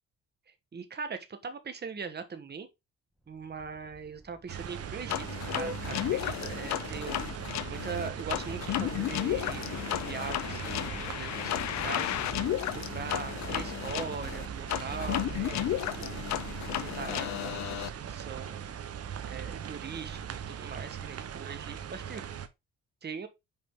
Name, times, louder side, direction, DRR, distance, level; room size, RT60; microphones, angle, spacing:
voice 1, 0.7-2.7 3.3-7.2 7.7-11.5 11.8-12.1 12.9-16.2 16.7-18.6 19.2-22.4 23.0-23.3, right 5 dB, 35° right, 1.4 m, -41 dB
Vehicle horn car horn honking, 3.2-18.6, equal, ahead, 1.3 m, -50 dB
sound 1, 4.5-22.5, right 8 dB, 50° right, 0.9 m, -40 dB
sound 2, 5.1-17.9, left 13 dB, 65° left, 0.6 m, -33 dB
5.8 x 5.0 x 3.7 m
cardioid pair, 90°, 30 cm